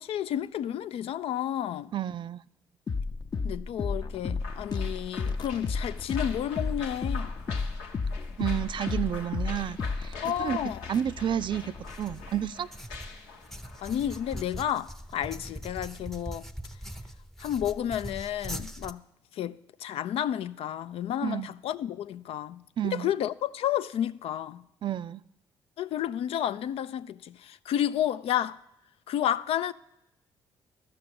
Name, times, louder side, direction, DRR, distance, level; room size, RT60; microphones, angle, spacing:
voice 1, 0.0-1.9 3.4-7.3 10.2-10.8 13.8-16.4 17.4-19.0 19.3-24.6 25.8-28.6 29.1-29.7, left 10 dB, 60° left, 0.4 m, -31 dB
voice 2, 1.9-2.4 8.4-10.6 10.9-12.7 21.2-21.5 22.8-23.1 24.8-25.2, right 10 dB, 50° right, 0.4 m, -31 dB
sound 1, 2.9-12.5, left 4 dB, 40° left, 0.7 m, -33 dB
sound 2, 4.4-14.7, left 5 dB, 85° left, 1.0 m, -46 dB
sound 3, 11.8-18.9, equal, 5° left, 0.7 m, -41 dB
12.5 x 6.8 x 6.9 m
hypercardioid pair, 50°, 11 cm